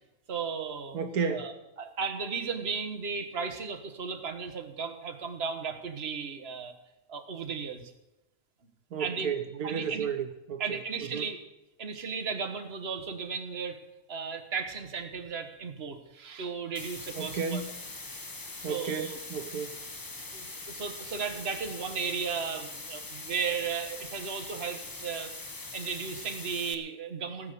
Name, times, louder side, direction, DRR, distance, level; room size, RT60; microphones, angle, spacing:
voice 1, 0.3-1.0 1.3-1.5 1.8-6.7 7.1-7.9 9.0-9.3 9.6-10.1 10.6-11.4 11.8-13.8 14.1-17.6 18.7-19.2 20.3-25.3 25.7-27.5, right 6 dB, 45° right, 6 dB, 1.6 m, -35 dB
voice 2, 0.9-1.5 8.9-11.3 17.2-17.7 18.6-19.8, right 6 dB, 80° right, 8 dB, 1.4 m, -33 dB
sound 1, 16.7-26.7, left 2 dB, 20° left, 0.7 m, -42 dB
17.0 x 7.7 x 6.8 m, 0.96 s
omnidirectional pair, 1.6 m